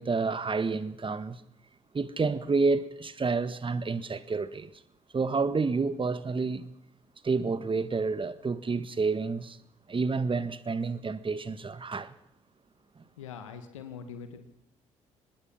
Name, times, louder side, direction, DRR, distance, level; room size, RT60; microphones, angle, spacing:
voice 1, 0.0-1.4 1.9-4.7 5.1-6.7 7.2-9.6 9.9-12.1 13.0-13.1, right 4 dB, 35° right, 1.6 m, -29 dB
voice 2, 13.2-14.5, left 6 dB, 90° left, 1.9 m, -43 dB
24.5 x 20.5 x 5.8 m
hypercardioid pair, 45°, 16 cm